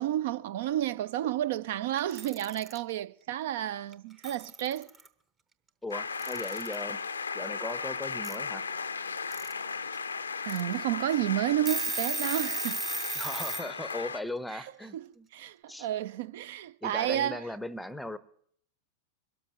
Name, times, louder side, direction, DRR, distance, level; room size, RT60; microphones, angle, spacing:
voice 1, 0.0-4.9 10.5-12.8 14.5-14.6 14.9-15.1 15.3-17.4, right 12 dB, 55° right, 0.4 m, -31 dB
Alarm / Clock, 2.0-2.8 3.9-4.0 4.2-5.1 6.2-6.8 8.2-8.4 9.1-9.5 10.0-10.1 10.5-10.6 11.1-11.2 11.5-13.7, right 4 dB, 20° right, 0.9 m, -35 dB
voice 2, 5.8-7.0 7.3-8.7 13.2-15.3 15.7-15.9 16.8-18.2, left 1 dB, 5° left, 0.7 m, -38 dB
sound 1, 5.9-14.2, left 5 dB, 75° left, 0.5 m, -36 dB
23.5 x 13.0 x 3.0 m
figure-of-eight pair, 90°, 0 cm